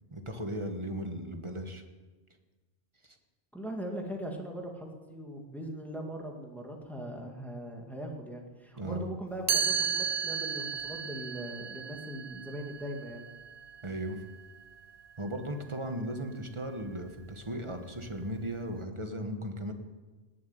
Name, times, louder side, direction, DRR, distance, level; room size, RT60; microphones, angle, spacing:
voice 1, 0.1-1.8 3.0-3.2 8.8-9.1 13.8-14.2 15.2-19.7, right 1 dB, 25° right, 5 dB, 1.5 m, -36 dB
voice 2, 3.5-13.3, right 1 dB, ahead, 1 dB, 2.1 m, -40 dB
Chime, 9.5-15.3, right 7 dB, 45° right, 0.6 m, -34 dB
18.5 x 7.4 x 9.6 m, 1.3 s
omnidirectional pair, 1.1 m